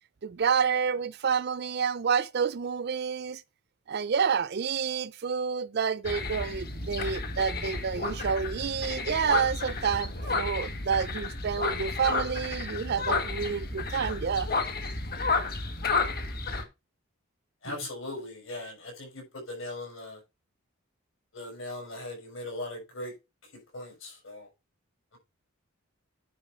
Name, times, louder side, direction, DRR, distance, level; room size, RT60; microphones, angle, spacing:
voice 1, 0.2-3.4 3.9-14.5, right 6 dB, 50° right, 0.4 m, -29 dB
sound 1, 6.0-16.6, left 3 dB, 45° left, 1.7 m, -32 dB
voice 2, 17.6-20.2 21.3-23.1 23.7-24.5, left 1 dB, 65° left, 5.8 m, -39 dB
9.9 x 5.3 x 4.4 m
head